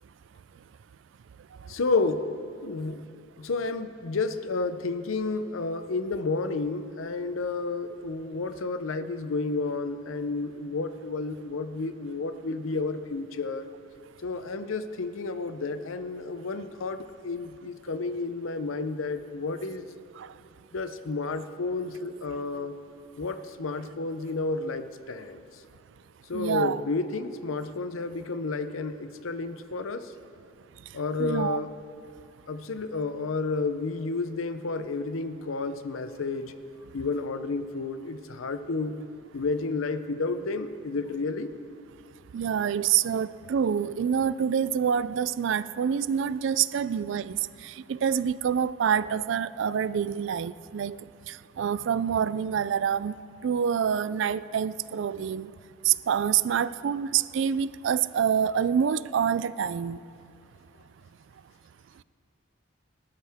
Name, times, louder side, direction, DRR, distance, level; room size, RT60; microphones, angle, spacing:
voice 1, 1.7-3.0 3.4-13.7 14.2-20.0 20.7-22.8 23.2-25.4 26.3-30.1 30.9-31.7 32.5-36.5 36.9-39.0 39.3-41.5, left 3 dB, 80° left, 10 dB, 0.6 m, -31 dB
voice 2, 26.3-26.8 31.2-31.6 42.3-47.4 47.6-51.0 51.3-53.2 53.4-55.5 55.9-60.0, right 8 dB, 65° right, 17 dB, 0.3 m, -26 dB
19.5 x 12.5 x 3.5 m, 2.5 s
head